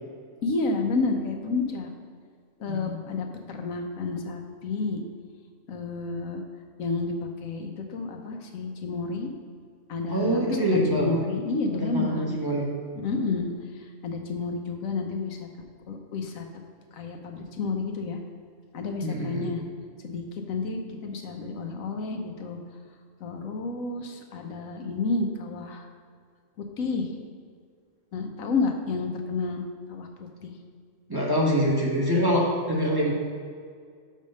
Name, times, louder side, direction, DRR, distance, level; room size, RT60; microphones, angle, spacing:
voice 1, 0.4-1.9 2.6-5.0 5.7-6.4 6.8-9.3 9.9-10.6 10.9-12.4 13.0-13.5 14.0-15.5 15.9-16.5 16.9-18.2 18.7-19.6 20.0-22.6 23.2-25.9 26.6-27.1 28.1-29.6 29.9-30.5, left 3 dB, 80° left, 4 dB, 1.2 m, -30 dB
voice 2, 10.1-11.1 11.8-12.7 19.0-19.5 31.1-33.1, equal, 20° right, -4 dB, 1.2 m, -25 dB
6.4 x 5.6 x 5.3 m, 2.1 s
omnidirectional pair, 1.4 m